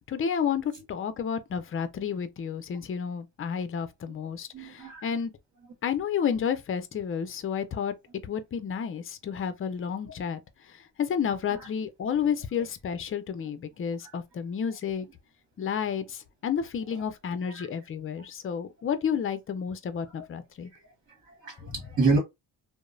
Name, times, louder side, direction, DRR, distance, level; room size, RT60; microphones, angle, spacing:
voice 1, 0.1-5.3 5.8-7.9 8.2-10.4 11.0-15.1 15.6-20.7, left 7 dB, 35° left, 0.5 m, -31 dB
voice 2, 4.5-5.1 11.6-11.7 14.0-14.1 17.5-17.7 20.7-20.8 21.3-22.2, right 3 dB, 35° right, 1.5 m, -28 dB
2.8 x 2.0 x 2.5 m
cardioid pair, 80°, 40 cm